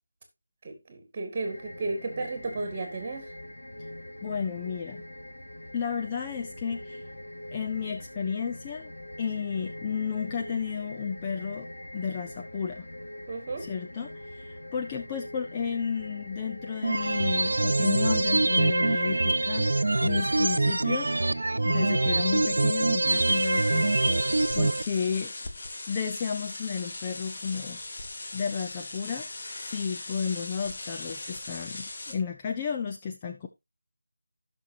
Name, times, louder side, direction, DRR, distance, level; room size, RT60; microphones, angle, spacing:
voice 1, 0.6-3.3 13.3-13.7, right 3 dB, 25° right, 2.1 m, -33 dB
sound 1, 1.4-21.4, left 1 dB, 60° left, 3.1 m, -43 dB
voice 2, 4.2-5.0 5.7-7.0 7.5-8.9 9.2-12.9 13.6-21.1 21.6-25.3 25.9-27.8 28.3-29.3 29.6-33.5, left 6 dB, 15° left, 0.5 m, -32 dB
sound 2, 16.8-24.8, right 2 dB, 55° right, 0.4 m, -24 dB
sound 3, 23.1-32.1, left 2 dB, 35° left, 1.6 m, -39 dB
15.5 x 6.1 x 2.7 m
figure-of-eight pair, 160°, 0 cm